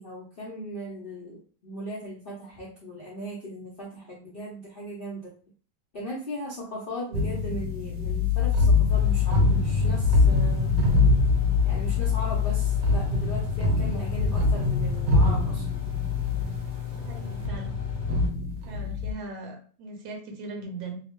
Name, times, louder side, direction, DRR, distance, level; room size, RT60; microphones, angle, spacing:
voice 1, 0.0-5.3 5.9-10.7 11.6-15.6, equal, 80° left, -5 dB, 0.5 m, -38 dB
sound 1, 7.1-19.1, left 4 dB, 90° right, 1.3 m, -24 dB
sound 2, 8.9-18.3, left 8 dB, 35° left, 0.7 m, -36 dB
voice 2, 17.0-17.7 18.7-21.0, right 2 dB, 65° right, 2 dB, 1.0 m, -39 dB
2.9 x 2.0 x 2.9 m, 0.41 s
omnidirectional pair, 1.9 m